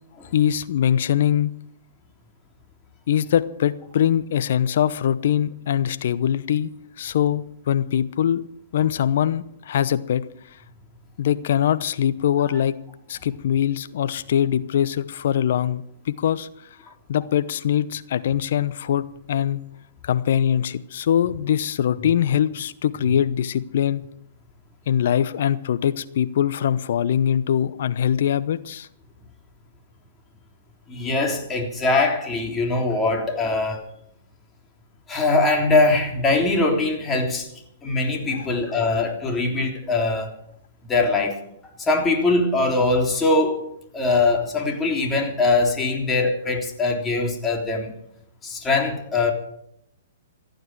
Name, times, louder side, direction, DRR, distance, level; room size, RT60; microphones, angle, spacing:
voice 1, 0.3-1.5 3.1-6.7 7.0-8.4 8.7-10.2 11.2-12.8 13.1-16.5 17.1-19.6 20.0-24.0 24.9-28.9 38.3-38.5, left 10 dB, 60° left, 14 dB, 0.8 m, -22 dB
voice 2, 30.9-33.8 35.1-37.5 37.8-40.3 40.8-41.4 41.9-43.7 43.9-47.9 48.4-49.3, left 3 dB, 15° left, 1 dB, 3.4 m, -22 dB
27.0 x 9.3 x 4.7 m, 0.75 s
figure-of-eight pair, 115°, 0 cm